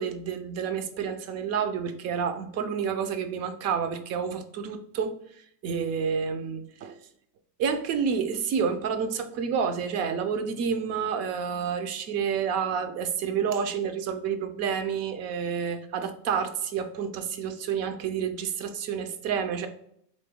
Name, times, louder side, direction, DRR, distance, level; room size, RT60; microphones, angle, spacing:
voice 1, 0.0-7.0 7.6-19.7, right 6 dB, 35° right, 8 dB, 0.5 m, -29 dB
4.0 x 2.7 x 3.6 m, 0.70 s
supercardioid pair, 120°, 50 cm